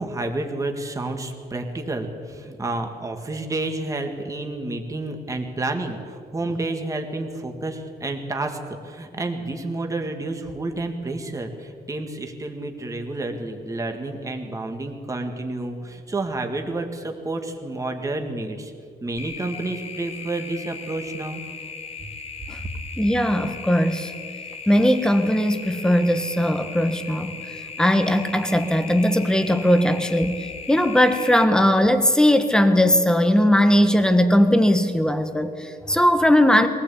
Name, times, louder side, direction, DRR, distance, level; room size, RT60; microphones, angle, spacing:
voice 1, 0.0-18.7 19.0-21.4, right 2 dB, 20° right, 4 dB, 1.9 m, -30 dB
sound 1, 19.2-31.4, left 5 dB, 40° left, 1.4 m, -37 dB
voice 2, 23.0-24.1 24.7-27.4 27.8-30.4 30.7-36.7, equal, 5° left, 8 dB, 1.3 m, -19 dB
22.5 x 18.0 x 8.5 m, 2.2 s
wide cardioid pair, 170°, 17 cm